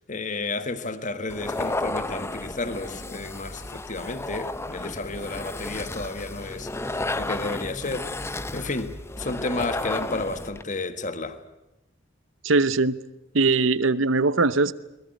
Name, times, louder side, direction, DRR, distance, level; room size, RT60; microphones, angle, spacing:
voice 1, 0.1-11.4, left 3 dB, 40° left, 1.5 m, -32 dB
sound 1, 1.3-10.6, left 2 dB, 15° left, 0.8 m, -33 dB
voice 2, 12.4-13.0 13.3-14.7, right 3 dB, 80° right, 0.9 m, -21 dB
22.5 x 20.0 x 9.1 m
head